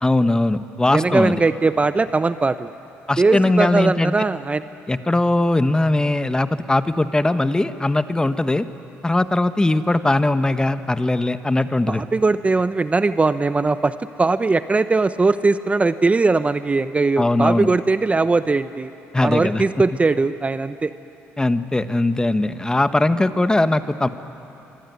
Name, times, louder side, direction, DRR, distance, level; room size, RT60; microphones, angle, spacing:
voice 1, 0.0-1.4 3.1-4.1 4.9-8.7 9.0-12.0 17.2-17.7 19.1-19.6 21.4-24.1, left 2 dB, 15° left, 10 dB, 1.3 m, -20 dB
voice 2, 0.9-2.7 3.2-4.6 11.9-18.9 19.2-20.9, right 3 dB, 25° right, 12 dB, 0.8 m, -20 dB
24.5 x 24.5 x 9.6 m, 2.9 s
supercardioid pair, 70°, 5 cm